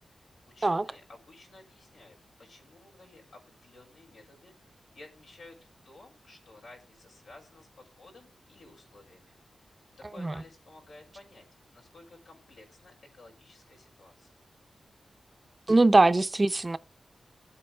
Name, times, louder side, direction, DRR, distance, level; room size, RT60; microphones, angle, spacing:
voice 1, 0.5-5.6 5.9-9.7 10.0-14.3, left 2 dB, 85° left, 5.8 m, -54 dB
voice 2, 15.7-16.8, right 2 dB, 30° right, 0.6 m, -21 dB
21.0 x 8.6 x 2.2 m
wide cardioid pair, 85°, 0 cm